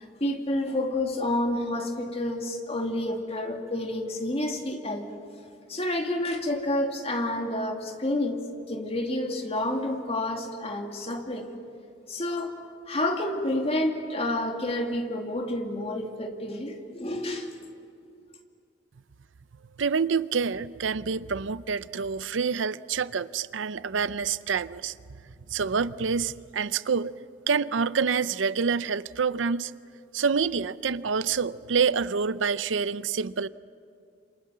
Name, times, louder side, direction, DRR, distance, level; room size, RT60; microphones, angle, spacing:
voice 1, 0.0-5.1 5.7-11.5 12.1-17.5, left 1 dB, 35° left, 2.3 m, -29 dB
voice 2, 19.8-24.9 25.5-27.1 27.5-29.7 30.1-33.5, right 5 dB, 85° right, 0.6 m, -27 dB
28.0 x 26.5 x 7.5 m
head